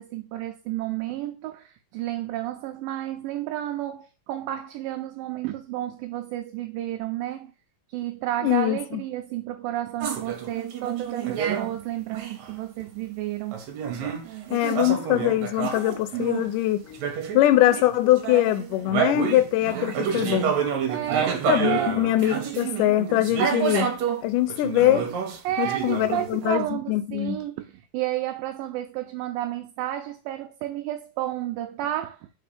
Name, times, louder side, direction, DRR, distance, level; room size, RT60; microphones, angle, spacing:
voice 1, 0.0-7.5 7.9-13.7 20.9-21.9 25.4-32.2, right 13 dB, 80° right, 2.2 m, -31 dB
voice 2, 8.4-9.0 14.5-17.0 17.3-20.5 21.5-23.9 24.2-25.1 25.6-27.4, left 14 dB, 80° left, 2.0 m, -22 dB
sound 1, 10.0-11.7 12.1-12.5 13.5-16.5 16.9-17.9 18.2-24.2 24.5-26.5, right 7 dB, 65° right, 2.1 m, -28 dB
4.6 x 4.4 x 5.1 m
omnidirectional pair, 4.1 m